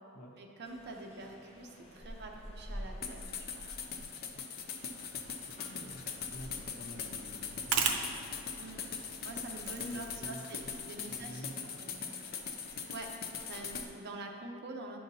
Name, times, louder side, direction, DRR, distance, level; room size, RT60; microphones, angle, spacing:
voice 1, 0.4-3.7 8.6-8.8 9.2-12.1 12.4-13.1 13.5-15.0, right 2 dB, 50° right, 2 dB, 0.7 m, -46 dB
sound 1, 0.6-13.9, equal, 25° left, 0.9 m, -52 dB
sound 2, 3.0-13.9, left 6 dB, 45° left, 0.5 m, -41 dB
voice 2, 3.9-4.4 5.7-7.9 9.9-10.7 11.1-11.8, left 1 dB, 85° left, 0 dB, 0.9 m, -50 dB
sound 3, 4.9-10.3, right 6 dB, 85° right, 0.6 m, -39 dB
10.5 x 5.7 x 2.7 m, 2.5 s
head